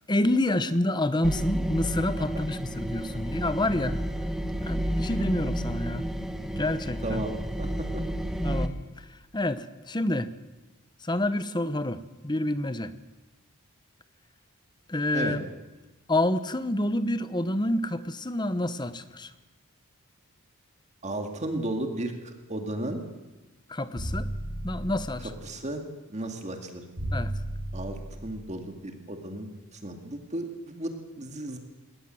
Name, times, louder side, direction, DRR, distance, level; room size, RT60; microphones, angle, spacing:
voice 1, 0.1-4.0 4.6-6.1 6.4-7.2 8.4-8.8 9.3-10.3 11.0-12.9 14.9-15.5 16.1-19.3 23.7-24.3 24.6-25.3 27.1-27.3, left 1 dB, 20° left, 13 dB, 0.9 m, -28 dB
sound 1, 1.2-8.7, equal, ahead, 1.3 m, -31 dB
voice 2, 7.0-8.0 15.1-15.4 21.0-23.0 25.4-25.8 26.1-26.8 27.7-29.5 29.7-31.6, right 1 dB, 30° right, 5 dB, 2.1 m, -34 dB
sound 2, 24.0-25.4 27.0-28.4, right 1 dB, 60° right, 7.7 m, -34 dB
21.0 x 18.5 x 7.7 m, 1.1 s
head